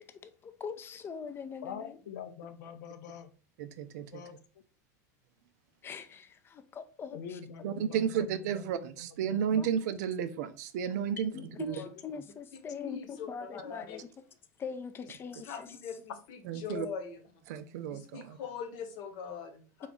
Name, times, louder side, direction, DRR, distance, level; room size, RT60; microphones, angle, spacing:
voice 1, 0.0-2.0 5.8-7.4 7.8-7.9 9.6-9.7 11.3-14.1 14.6-15.8, left 6 dB, 25° left, 0.4 m, -43 dB
voice 2, 1.6-3.3 3.9-4.6 7.1-8.6 9.1-9.4 11.3-11.9, left 7 dB, 80° left, 0.5 m, -45 dB
voice 3, 3.6-4.1 7.6-11.3 11.6-11.8 16.5-16.9 17.5-18.4, right 8 dB, 70° right, 0.5 m, -32 dB
voice 4, 12.8-14.0 15.4-16.1 16.6-17.2 17.9-19.9, left 7 dB, 55° left, 0.9 m, -41 dB
4.0 x 2.4 x 3.6 m
hypercardioid pair, 105°, 9 cm